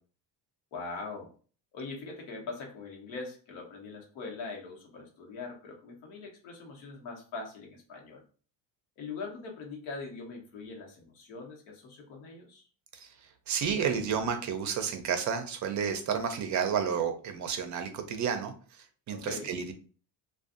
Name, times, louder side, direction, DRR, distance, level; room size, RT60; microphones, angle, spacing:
voice 1, 0.7-1.3 1.7-8.2 9.0-12.7 19.1-19.5, left 4 dB, 85° left, 1 dB, 1.0 m, -42 dB
voice 2, 12.9-19.7, right 7 dB, 40° right, 7 dB, 0.5 m, -31 dB
2.5 x 2.3 x 2.4 m, 0.40 s
cardioid pair, 105°, 46 cm